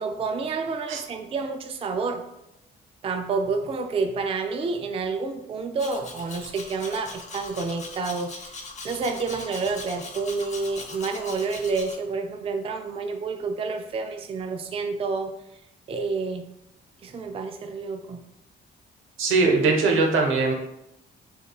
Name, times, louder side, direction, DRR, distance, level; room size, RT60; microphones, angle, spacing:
voice 1, 0.0-2.3 3.0-8.6 8.8-15.3 15.9-16.5 17.0-18.2, right 4 dB, 30° right, 6 dB, 0.4 m, -29 dB
Domestic sounds home sounds, 5.8-12.0, left 3 dB, 35° left, 0.7 m, -40 dB
voice 2, 19.2-20.5, right 3 dB, 85° right, 1 dB, 0.9 m, -21 dB
6.7 x 2.3 x 2.3 m, 0.85 s
cardioid pair, 90°, 20 cm